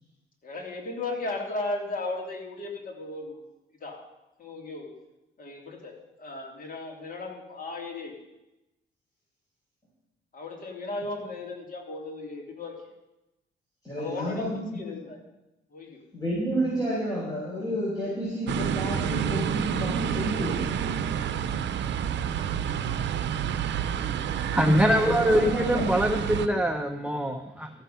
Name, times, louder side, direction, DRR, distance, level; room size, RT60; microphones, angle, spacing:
voice 1, 0.4-3.4 3.8-4.0 4.4-4.9 5.4-8.1 10.3-12.7 14.0-14.5 14.8-15.2 15.7-16.0, left 2 dB, 45° left, 0 dB, 2.9 m, -36 dB
voice 2, 13.8-14.8 16.1-20.7 24.9-25.9, equal, 20° left, -7 dB, 4.9 m, -30 dB
sound 1, 18.5-26.5, right 8 dB, 65° right, 0.7 m, -29 dB
voice 3, 24.5-27.7, equal, 5° right, 5 dB, 0.7 m, -23 dB
13.5 x 7.1 x 5.7 m, 0.97 s
cardioid pair, 90°, 20 cm